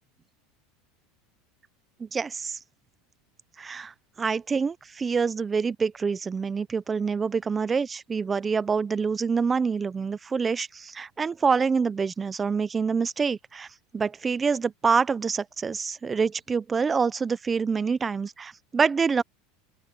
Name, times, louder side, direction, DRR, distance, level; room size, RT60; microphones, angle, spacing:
voice 1, 2.0-2.6 3.6-13.7 13.9-19.2, right 5 dB, 15° right, 0.4 m, -26 dB
open air
supercardioid pair, 155°, 0 cm